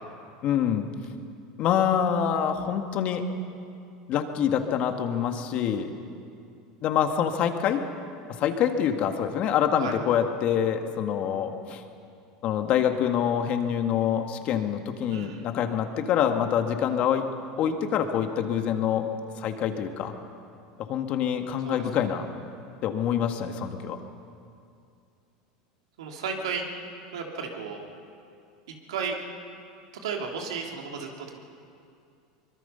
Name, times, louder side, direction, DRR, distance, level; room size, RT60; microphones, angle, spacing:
voice 1, 0.4-0.9 1.6-3.3 4.1-6.0 6.8-7.8 8.4-11.8 12.4-17.3 17.6-19.1 19.4-20.1 20.8-22.3 22.8-24.0, left 8 dB, 50° left, 6 dB, 1.8 m, -26 dB
voice 2, 15.1-15.4 21.6-21.8 26.0-26.6 27.1-27.9 28.9-29.2 30.0-31.4, right 5 dB, 90° right, 1 dB, 3.0 m, -33 dB
24.0 x 21.5 x 5.7 m, 2.5 s
supercardioid pair, 115°, 3 cm